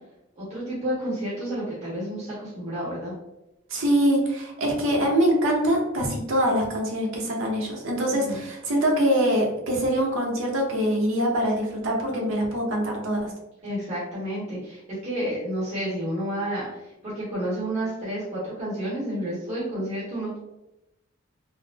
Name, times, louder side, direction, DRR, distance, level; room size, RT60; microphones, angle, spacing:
voice 1, 0.3-3.2 8.1-8.4 13.6-20.4, right 1 dB, 35° right, -10 dB, 1.2 m, -30 dB
voice 2, 3.7-13.3, equal, 65° right, -1 dB, 0.8 m, -24 dB
3.9 x 2.1 x 2.8 m, 0.91 s
head